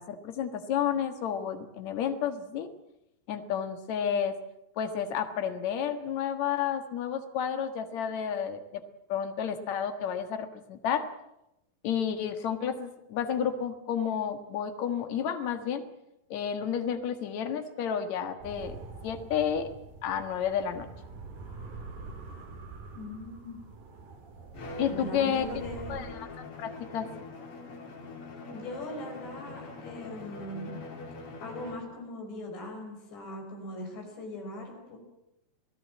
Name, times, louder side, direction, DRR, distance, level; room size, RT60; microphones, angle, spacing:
voice 1, 0.0-2.7 3.3-4.4 4.8-8.8 9.1-11.1 11.8-15.9 16.3-18.8 19.0-19.7 20.0-20.9 24.8-25.5 25.9-26.3 26.6-27.1, left 8 dB, 55° left, 8 dB, 2.2 m, -31 dB
sound 1, 18.4-26.1, right 3 dB, 55° right, 4.8 m, -45 dB
voice 2, 22.9-23.6 24.9-26.0 28.5-30.7 31.4-35.0, left 1 dB, 75° left, 3 dB, 7.6 m, -40 dB
Bowed string instrument, 24.5-31.9, left 3 dB, 35° left, 2.9 m, -43 dB
28.0 x 17.5 x 7.7 m, 0.88 s
omnidirectional pair, 5.0 m